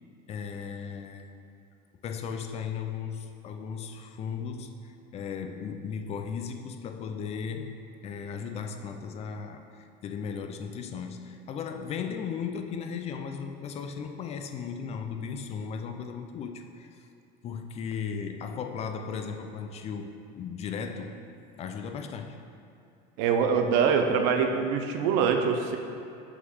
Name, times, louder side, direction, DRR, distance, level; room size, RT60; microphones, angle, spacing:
voice 1, 0.3-1.3 2.0-7.8 8.0-16.9 17.4-21.2 21.6-22.4, left 6 dB, 35° left, 6 dB, 0.4 m, -36 dB
voice 2, 23.2-25.8, right 6 dB, 80° right, 5 dB, 0.7 m, -24 dB
6.0 x 3.8 x 6.1 m, 2.7 s
cardioid pair, 160°, 20 cm